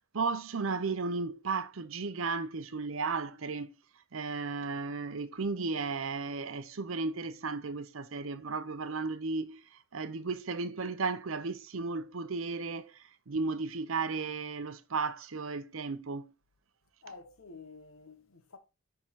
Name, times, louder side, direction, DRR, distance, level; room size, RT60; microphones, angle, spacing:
voice 1, 0.1-3.7 4.1-16.3, right 4 dB, 70° right, 0.7 m, -34 dB
voice 2, 17.0-18.6, left 4 dB, 80° left, 1.3 m, -50 dB
10.0 x 3.8 x 4.6 m
head